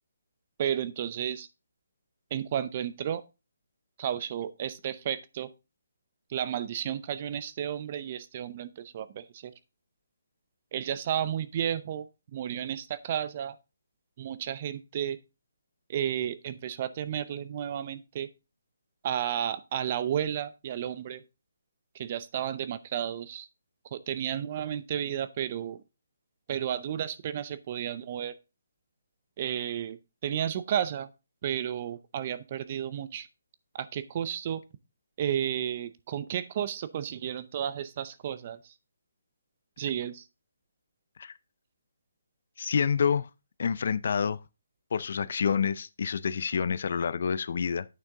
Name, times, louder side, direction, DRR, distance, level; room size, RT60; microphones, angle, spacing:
voice 1, 0.6-1.5 2.3-3.2 4.0-5.5 6.3-9.5 10.7-12.1 12.3-13.5 14.2-15.2 15.9-18.3 19.0-21.2 22.0-23.5 23.9-25.8 26.5-28.3 29.4-30.0 30.2-31.1 31.4-33.3 33.8-34.6 35.2-38.6 39.8-40.2, right 10 dB, 35° right, 0.6 m, -32 dB
voice 2, 42.6-43.3 43.6-44.4 44.9-47.9, left 6 dB, 55° left, 0.4 m, -28 dB
9.0 x 6.3 x 3.7 m
hypercardioid pair, 160°, 0 cm